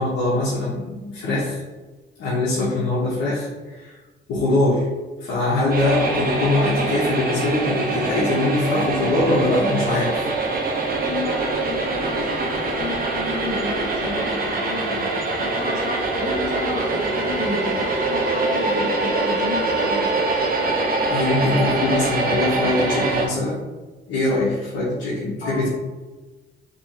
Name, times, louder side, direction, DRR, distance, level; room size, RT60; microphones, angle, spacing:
voice 1, 0.0-1.6 2.2-4.0 4.3-4.9 5.2-10.3 21.1-23.6 24.1-25.7, left 2 dB, 85° left, -7 dB, 1.2 m, -22 dB
sound 1, 5.7-23.3, right 3 dB, 45° right, 1.1 m, -23 dB
voice 2, 11.0-20.1 25.4-25.7, left 3 dB, 55° left, -2 dB, 1.5 m, -32 dB
5.3 x 3.2 x 2.9 m, 1.2 s
cardioid pair, 90°, 20 cm